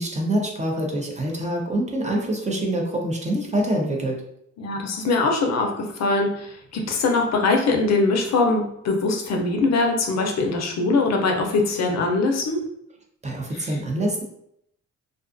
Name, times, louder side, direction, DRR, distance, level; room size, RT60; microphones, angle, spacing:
voice 1, 0.0-4.2 13.2-14.2, right 1 dB, 25° right, -1 dB, 0.6 m, -25 dB
voice 2, 4.6-12.6 13.5-13.8, left 3 dB, 60° left, 2 dB, 0.6 m, -22 dB
2.4 x 2.3 x 2.5 m, 0.75 s
cardioid pair, 90°, 30 cm